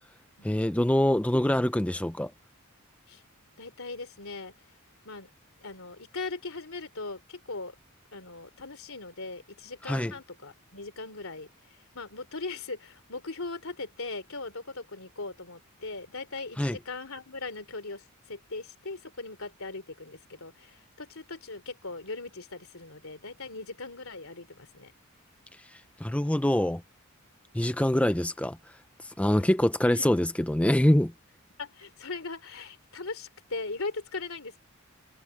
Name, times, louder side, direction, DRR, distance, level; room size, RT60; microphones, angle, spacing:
voice 1, 0.4-2.3 9.8-10.1 16.6-16.8 25.7-26.8 27.5-28.6 29.0-31.1, left 1 dB, 5° left, 0.5 m, -25 dB
voice 2, 3.6-4.5 5.0-5.3 5.6-7.7 8.1-24.9 29.4-29.5 29.9-30.1 31.6-34.6, left 3 dB, 70° left, 4.1 m, -39 dB
head